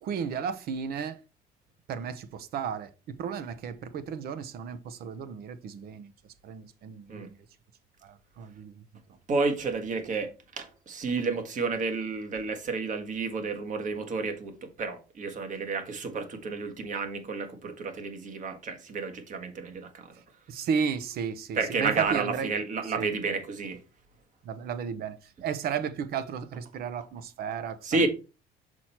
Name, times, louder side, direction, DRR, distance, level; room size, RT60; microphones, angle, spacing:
voice 1, 0.0-1.2 1.9-6.1 6.4-7.4 8.0-8.8 20.5-22.5 22.8-23.1 24.4-28.1, right 7 dB, 60° right, 0.8 m, -34 dB
voice 2, 9.3-20.1 21.5-23.8 27.8-28.1, right 4 dB, 45° right, 1.5 m, -31 dB
6.2 x 4.4 x 4.4 m
cardioid pair, 105°, 18 cm